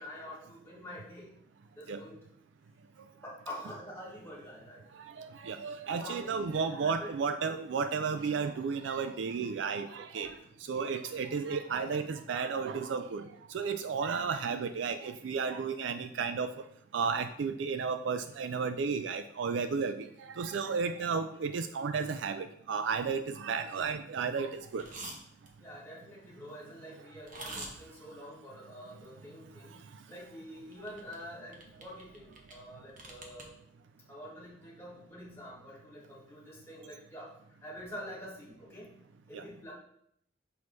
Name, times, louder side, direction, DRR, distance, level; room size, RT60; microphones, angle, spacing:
voice 1, 0.0-1.3 1.7-2.2 3.2-4.8 5.8-6.4 6.6-7.1 11.7-11.9 25.6-33.5 34.1-38.9 39.3-39.7, left 1 dB, 15° left, -5 dB, 1.8 m, -47 dB
voice 2, 5.0-10.3 10.7-16.5 16.9-24.9 39.3-39.4, right 5 dB, 85° right, 9 dB, 0.4 m, -33 dB
sound 1, 24.8-25.2 25.5-25.6 27.2-27.7 30.7-31.2 31.5-32.6 32.9-33.4, right 2 dB, 45° right, 1.0 m, -44 dB
6.2 x 5.4 x 3.2 m, 0.70 s
head